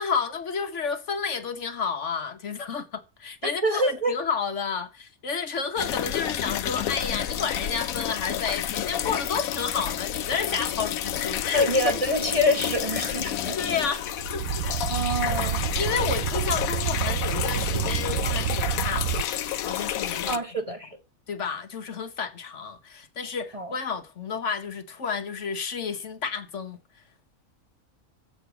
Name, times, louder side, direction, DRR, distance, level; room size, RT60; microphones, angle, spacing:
voice 1, 0.0-11.9 13.6-14.1 14.3-14.5 15.8-20.4 21.3-27.0, left 5 dB, 55° left, 1.3 m, -31 dB
voice 2, 3.6-4.1 11.5-13.9 14.9-15.6 20.3-20.9 23.5-23.7, left 1 dB, 25° right, 1.1 m, -26 dB
sound 1, 5.8-20.4, left 11 dB, 75° left, 1.1 m, -30 dB
sound 2, 14.1-19.2, right 9 dB, 80° right, 1.1 m, -28 dB
7.8 x 6.5 x 6.8 m
omnidirectional pair, 1.5 m